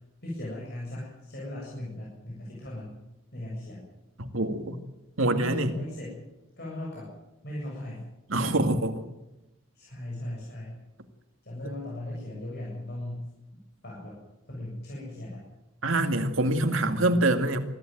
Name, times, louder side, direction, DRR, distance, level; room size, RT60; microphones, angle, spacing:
voice 1, 0.2-3.0 3.3-3.9 5.3-6.2 6.6-7.1 7.4-8.1 8.3-8.8 9.7-10.8 11.4-13.3 13.8-14.2 14.5-15.4 16.8-17.2, left 1 dB, 55° left, -4 dB, 7.5 m, -38 dB
voice 2, 4.2-4.8 5.2-5.7 8.3-8.9 15.8-17.6, right 2 dB, 85° right, 6 dB, 2.3 m, -25 dB
24.0 x 14.5 x 9.3 m, 0.97 s
head